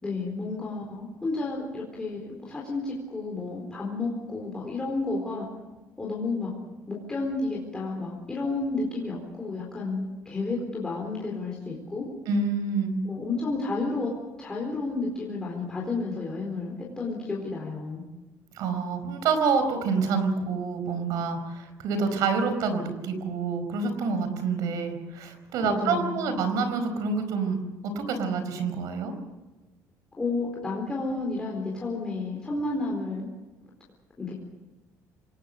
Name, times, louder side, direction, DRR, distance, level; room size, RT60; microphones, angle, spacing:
voice 1, 0.0-5.5 6.0-6.5 6.9-12.0 13.0-14.1 14.4-18.0 25.6-26.3 30.2-33.3 34.2-34.3, left 3 dB, 10° left, -3 dB, 4.2 m, -31 dB
voice 2, 12.3-13.0 18.5-27.6 27.9-29.1, right 4 dB, 65° right, 8 dB, 4.8 m, -27 dB
27.0 x 19.0 x 6.7 m, 1.2 s
cardioid pair, 170°, 6 cm